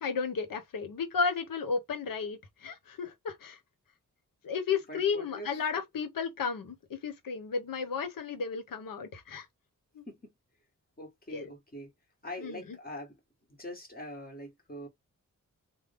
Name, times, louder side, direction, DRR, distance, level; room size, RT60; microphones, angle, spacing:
voice 1, 0.0-3.6 4.4-9.4 9.9-10.0 11.3-11.5 12.4-12.6, left 5 dB, 90° left, 1.0 m, -33 dB
voice 2, 4.9-5.5 10.1-10.3 11.0-11.9 12.2-13.2 13.6-14.9, left 1 dB, 30° left, 1.6 m, -43 dB
3.4 x 2.2 x 3.5 m
wide cardioid pair, 110°, 33 cm